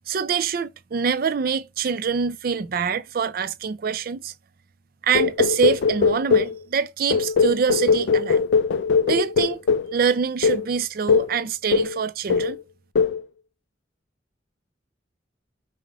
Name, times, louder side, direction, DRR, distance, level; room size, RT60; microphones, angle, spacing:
voice 1, 0.1-4.3 5.0-8.4 9.1-9.6 9.9-12.6, right 6 dB, 55° right, 0.4 m, -25 dB
sound 1, 5.1-6.6 7.1-9.9 10.4-10.7 11.1-11.4 11.7-12.0 12.3-12.6 13.0-13.2, left 5 dB, 80° left, 0.4 m, -20 dB
5.3 x 2.1 x 4.7 m
head